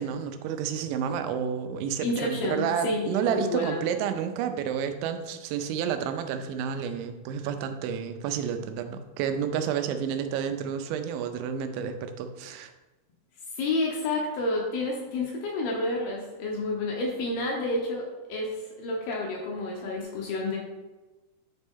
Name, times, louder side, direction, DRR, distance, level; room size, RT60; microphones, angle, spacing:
voice 1, 0.0-12.7, right 8 dB, 90° right, 7 dB, 3.0 m, -30 dB
voice 2, 2.0-3.8 13.5-20.6, left 2 dB, 75° left, -1 dB, 2.4 m, -30 dB
9.9 x 4.1 x 3.7 m, 1.1 s
omnidirectional pair, 5.2 m